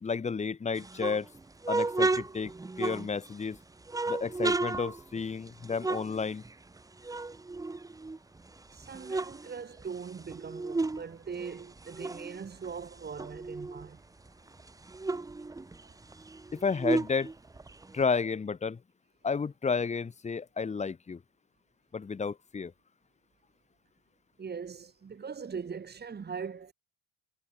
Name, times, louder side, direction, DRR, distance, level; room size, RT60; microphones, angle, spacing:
voice 1, 0.0-1.3 1.7-2.5 2.8-3.6 4.1-6.4 16.5-17.3 17.9-18.8 19.2-21.2 21.9-22.7, left 5 dB, 20° left, 1.4 m, -31 dB
sound 1, 0.8-3.4 3.9-6.8 7.0-8.4 8.8-11.0 11.3-13.9 14.3-14.4 14.6-18.0, right 3 dB, 10° right, 0.9 m, -33 dB
voice 2, 8.7-14.0 15.8-16.0 24.4-26.7, right 6 dB, 30° right, 7.4 m, -41 dB
supercardioid pair, 85°, 31 cm